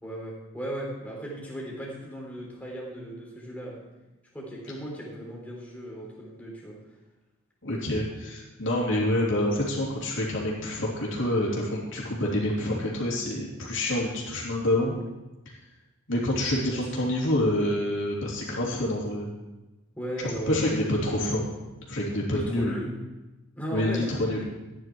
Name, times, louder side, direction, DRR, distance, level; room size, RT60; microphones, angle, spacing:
voice 1, 0.0-3.8 4.3-6.8 16.7-16.9 20.0-20.8 22.3-22.9 23.5-24.5, equal, 5° left, -3 dB, 3.5 m, -36 dB
voice 2, 7.6-14.9 16.1-19.3 20.2-21.4 21.9-22.8 23.7-24.4, left 1 dB, 55° left, -4 dB, 3.3 m, -27 dB
14.5 x 10.0 x 4.7 m, 1.1 s
head